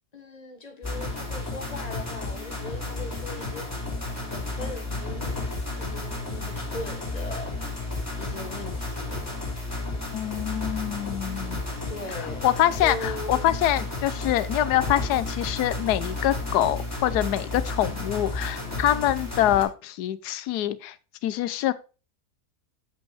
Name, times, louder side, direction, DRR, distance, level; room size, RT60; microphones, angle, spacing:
voice 1, 0.1-3.7 4.2-5.5 5.8-7.5 8.2-9.3 11.9-13.5, left 2 dB, 30° left, 1.2 m, -39 dB
sound 1, 0.8-19.6, left 2 dB, 10° left, 2.4 m, -32 dB
voice 2, 10.1-11.6 12.4-20.9 21.2-21.7, left 12 dB, 90° left, 1.2 m, -25 dB
7.7 x 5.3 x 4.6 m
omnidirectional pair, 1.7 m